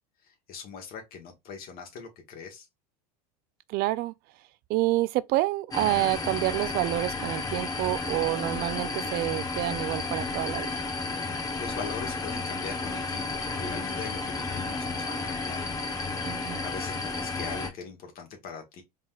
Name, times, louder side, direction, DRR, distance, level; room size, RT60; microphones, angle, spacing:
voice 1, 0.2-2.7 11.2-15.8 16.6-18.8, left 5 dB, 50° left, 1.4 m, -41 dB
voice 2, 3.7-4.1 4.7-10.8 16.2-16.6, right 17 dB, 55° right, 0.4 m, -28 dB
sound 1, 5.7-17.7, left 3 dB, 20° left, 1.1 m, -32 dB
4.0 x 3.8 x 2.4 m
hypercardioid pair, 95°, 20 cm